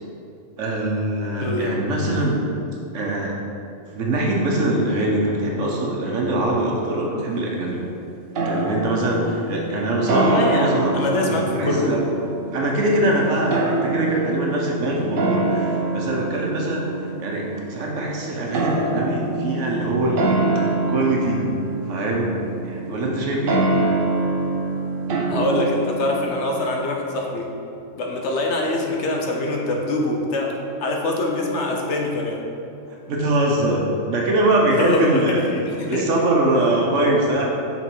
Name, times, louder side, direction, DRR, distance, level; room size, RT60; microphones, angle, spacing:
voice 1, 0.6-2.4 2.9-3.3 3.9-7.8 8.4-11.0 11.2-12.0 12.5-21.4 21.9-22.4 22.6-23.7 32.9-35.4 35.8-37.5, right 1 dB, 75° right, -2 dB, 1.2 m, -23 dB
voice 2, 1.4-1.8 10.1-11.9 25.3-27.5 27.9-30.5 30.8-32.4 34.8-36.1, left 2 dB, 70° left, 0 dB, 1.0 m, -24 dB
sound 1, 8.3-26.8, right 2 dB, 55° right, 0.7 m, -25 dB
5.9 x 4.0 x 4.4 m, 2.6 s
omnidirectional pair, 1.3 m